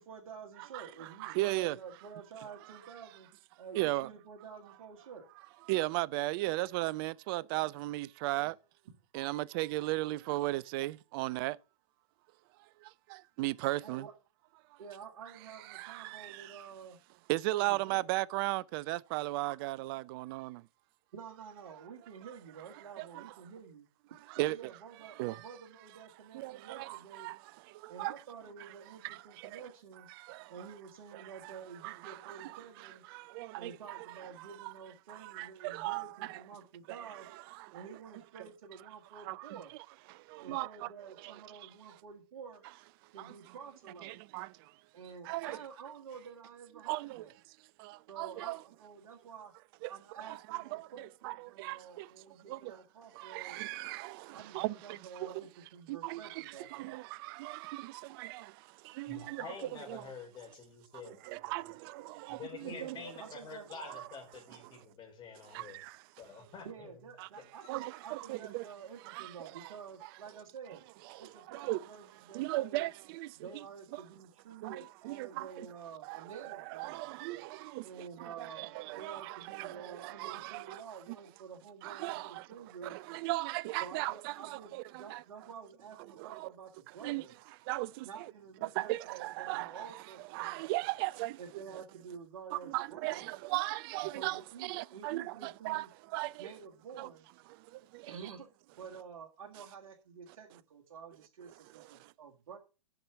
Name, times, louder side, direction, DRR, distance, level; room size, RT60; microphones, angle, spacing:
voice 1, 0.0-3.3 3.6-5.3 13.8-14.1 14.8-17.0 17.5-18.0 21.1-23.9 24.3-27.3 27.9-30.1 30.5-33.0 33.5-37.3 37.7-39.7 40.4-42.6 43.1-44.2 44.9-47.3 48.1-49.5 49.9-53.6 54.3-56.9 62.7-63.8 66.6-70.8 71.2-72.9 73.4-77.2 77.8-82.9 83.8-87.4 88.0-90.6 91.4-93.3 94.1-95.9 96.4-97.3 98.1-98.5 98.8-102.6, right 6 dB, 65° right, 1.7 m, -50 dB
voice 2, 1.2-1.8 3.8-4.1 5.7-8.6 9.1-11.6 12.8-14.1 15.7-16.6 17.3-20.7 23.0-23.3 24.3-24.6 25.2-25.4 26.3-28.1 29.0-29.6 30.2-30.5 31.1-32.6 33.1-34.1 34.4-34.7 35.1-36.4 36.9-37.8 39.2-39.6 40.1-40.7 41.2-41.4 43.2-43.3 44.0-44.7 45.2-45.6 46.8-47.2 47.8-48.6 49.8-49.9 50.2-52.1 52.5-52.7 53.1-55.4 55.9-60.0 61.2-63.1 63.9-64.1 65.5-66.0 67.2-67.3 67.7-68.7 69.1-69.7 71.1-71.9 72.3-73.6 73.9-74.0 74.6-75.5 76.0-80.8 81.8-82.5 82.8-85.2 86.2-86.5 87.0-87.2 87.7-88.1 88.6-89.9 90.3-91.4 91.7-91.8 92.5-95.9 96.1-96.5 97.0-97.1 97.5-98.1 101.7-102.1, right 19 dB, 40° right, 0.4 m, -37 dB
voice 3, 59.1-61.2 62.3-65.8 66.2-67.0, left 5 dB, 25° left, 4.0 m, -47 dB
7.8 x 6.0 x 6.7 m
hypercardioid pair, 120°, 18 cm